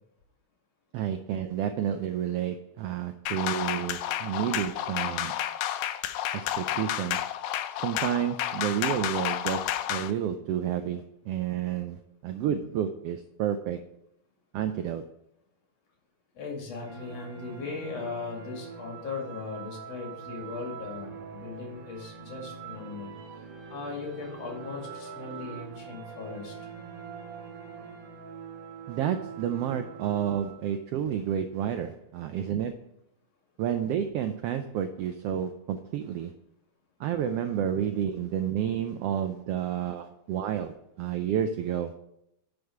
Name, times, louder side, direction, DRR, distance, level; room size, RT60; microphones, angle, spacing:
voice 1, 0.9-5.3 6.3-7.2 7.8-12.0 12.2-13.8 14.5-15.1 28.9-32.8 33.6-36.3 37.0-41.9, right 9 dB, 90° right, 8 dB, 1.3 m, -30 dB
sound 1, 3.3-10.1, left 12 dB, 80° left, 1.8 m, -31 dB
voice 2, 16.3-23.1 23.7-26.7, left 4 dB, 60° left, 0 dB, 3.3 m, -38 dB
sound 2, 16.8-30.7, right 6 dB, 65° right, 1.9 m, -43 dB
10.0 x 5.3 x 4.6 m, 0.80 s
omnidirectional pair, 3.3 m